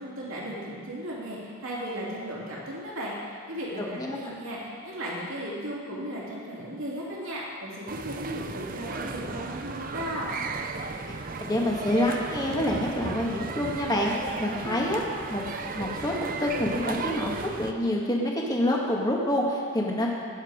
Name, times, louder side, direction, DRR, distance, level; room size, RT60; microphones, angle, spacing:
voice 1, 0.0-10.4, equal, 70° right, -5 dB, 3.0 m, -36 dB
voice 2, 3.8-4.2 11.4-15.0 15.3-15.5 15.7-20.1, left 1 dB, 15° left, -2 dB, 1.6 m, -27 dB
sound 1, 7.9-17.7, right 3 dB, 40° right, 0.6 m, -35 dB
19.0 x 7.3 x 5.1 m, 2.3 s
head